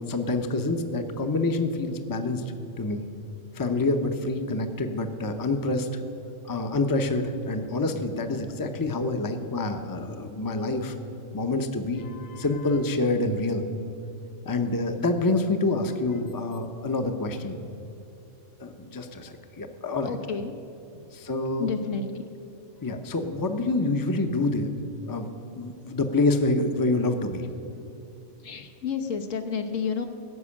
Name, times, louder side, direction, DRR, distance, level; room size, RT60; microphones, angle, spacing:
voice 1, 0.0-3.0 3.5-5.9 6.4-11.0 11.3-13.6 14.5-17.6 18.6-20.1 21.1-21.7 22.8-24.7 25.1-25.3 25.6-27.5, left 2 dB, 20° left, 6 dB, 0.7 m, -27 dB
voice 2, 20.0-20.5 20.9-21.1 21.6-22.2 28.4-30.1, left 6 dB, 80° left, 5 dB, 1.4 m, -31 dB
15.5 x 6.1 x 8.6 m, 3.0 s
omnidirectional pair, 1.3 m